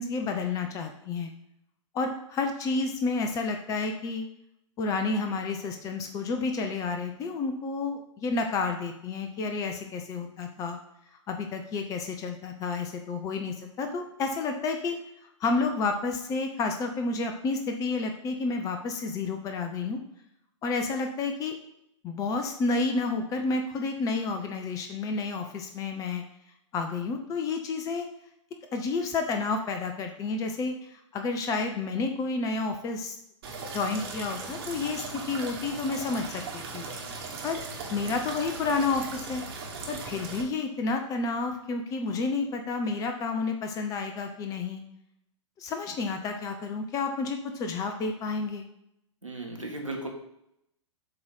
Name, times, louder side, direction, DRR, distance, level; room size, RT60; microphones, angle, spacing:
voice 1, 0.0-1.3 1.9-4.2 4.8-10.8 11.3-15.0 15.2-20.0 20.6-21.5 22.0-26.2 26.7-28.1 28.7-33.2 33.7-36.8 37.4-37.6 37.9-39.4 39.9-44.8 45.6-48.7, left 3 dB, 20° left, 5 dB, 0.7 m, -30 dB
sound 1, 33.4-40.4, right 4 dB, 50° right, 1.5 m, -38 dB
voice 2, 49.2-50.1, right 2 dB, 90° right, 0 dB, 1.6 m, -35 dB
7.7 x 3.2 x 5.6 m, 0.79 s
figure-of-eight pair, 110°, 16 cm